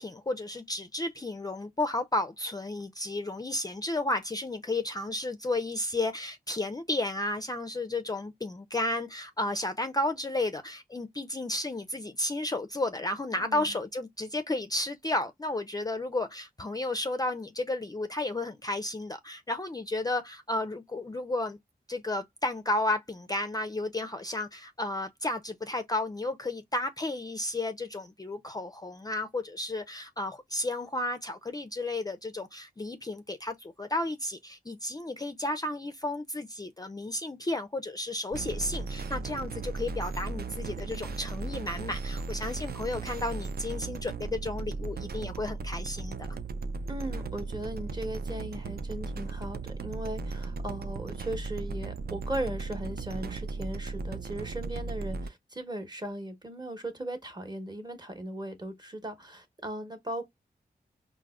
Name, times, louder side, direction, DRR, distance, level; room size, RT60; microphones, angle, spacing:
voice 1, 0.0-21.6 21.9-46.4, left 2 dB, 25° left, 0.4 m, -33 dB
voice 2, 13.3-13.8 46.9-60.3, right 1 dB, 25° right, 0.9 m, -38 dB
sound 1, 38.3-55.3, right 4 dB, 65° right, 0.4 m, -36 dB
4.6 x 2.0 x 2.3 m
cardioid pair, 50°, 17 cm